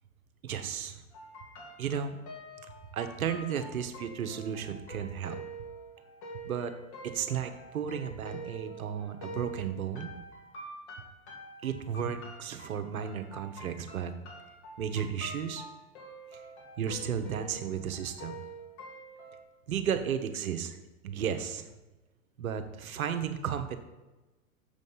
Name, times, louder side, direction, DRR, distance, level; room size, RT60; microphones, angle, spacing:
voice 1, 0.4-1.0 1.8-2.2 2.9-5.4 6.4-6.7 7.0-10.1 11.6-14.1 14.8-15.7 16.8-18.4 19.7-20.8 21.0-21.6 22.4-23.8, right 8 dB, 75° right, 8 dB, 1.1 m, -34 dB
sound 1, 1.1-19.4, right 1 dB, 50° left, 2.3 m, -46 dB
7.1 x 5.3 x 5.6 m, 1.1 s
hypercardioid pair, 110°, 42 cm